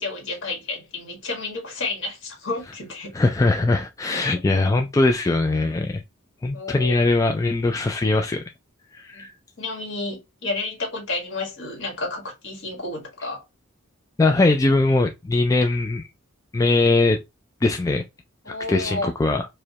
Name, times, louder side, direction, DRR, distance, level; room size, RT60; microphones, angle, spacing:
voice 1, 0.0-3.1 4.1-4.2 6.5-6.9 9.1-9.3 9.6-13.4 18.4-19.1, left 3 dB, 65° left, 1.6 m, -31 dB
voice 2, 3.1-6.0 6.4-8.4 8.9-9.3 14.2-16.0 16.5-17.2 17.6-18.0 18.7-19.5, left 2 dB, 15° left, 0.3 m, -21 dB
4.8 x 2.2 x 2.8 m
head